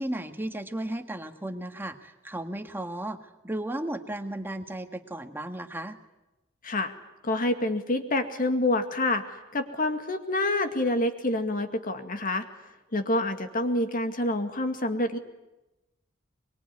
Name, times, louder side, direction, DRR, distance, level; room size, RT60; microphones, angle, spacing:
voice 1, 0.0-3.2 3.4-6.0, right 1 dB, 10° right, 6 dB, 1.7 m, -34 dB
voice 2, 7.2-12.5 12.9-15.2, left 1 dB, 45° left, 7 dB, 2.1 m, -27 dB
23.5 x 23.0 x 9.7 m, 1.0 s
head